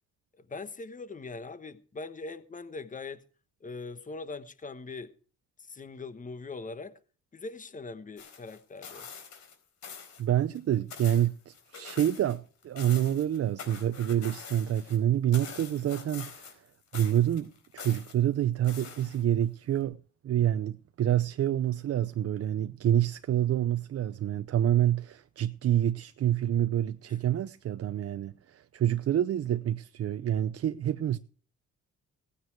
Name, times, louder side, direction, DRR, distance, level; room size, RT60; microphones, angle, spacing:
voice 1, 0.3-3.2 3.6-5.1 5.6-7.0 7.3-9.1 27.1-27.2, left 3 dB, 25° left, 1.2 m, -41 dB
sound 1, 8.2-9.5 9.8-10.2 10.6-12.4 12.6-15.0 15.3-16.7 16.9-18.1 18.6-19.4 19.8-19.9, left 6 dB, 65° left, 4.2 m, -45 dB
voice 2, 10.2-16.6 16.9-20.0 20.2-31.2, right 11 dB, 50° right, 0.7 m, -27 dB
17.5 x 9.3 x 4.7 m
cardioid pair, 90°, 30 cm